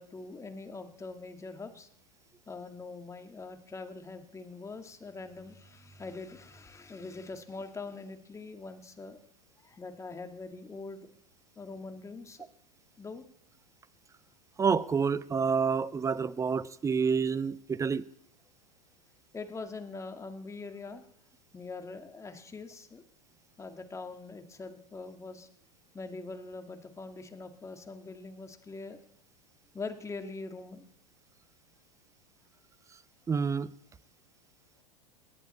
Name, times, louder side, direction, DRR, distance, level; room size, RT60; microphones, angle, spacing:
voice 1, 0.0-1.9 2.5-9.2 9.6-11.1 11.6-12.4 13.0-13.2 19.3-21.0 21.5-23.0 23.6-25.5 25.9-29.0 29.7-30.9, left 3 dB, 15° left, 2.0 m, -43 dB
voice 2, 14.6-18.1 33.3-33.7, right 6 dB, 15° right, 0.7 m, -28 dB
28.0 x 10.5 x 4.4 m
hypercardioid pair, 95°, 20 cm